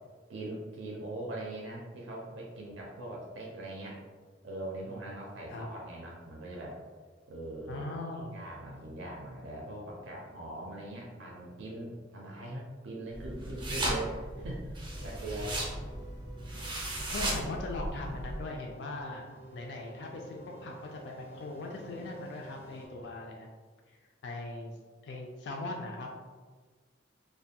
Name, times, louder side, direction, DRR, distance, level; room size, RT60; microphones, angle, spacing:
voice 1, 0.3-4.0 4.4-6.8 7.3-8.0 8.3-15.6 16.4-16.9, right 1 dB, 75° right, -3 dB, 0.5 m, -41 dB
voice 2, 7.7-8.4 13.3-13.6 15.4-15.6 17.1-23.5 23.9-24.0 24.2-24.8 25.0-26.1, left 2 dB, 60° left, 0 dB, 0.3 m, -40 dB
sound 1, 13.1-18.4, right 1 dB, 25° right, 0.5 m, -36 dB
sound 2, 14.9-22.9, right 1 dB, 90° left, 0.7 m, -50 dB
2.5 x 2.2 x 2.7 m, 1.4 s
head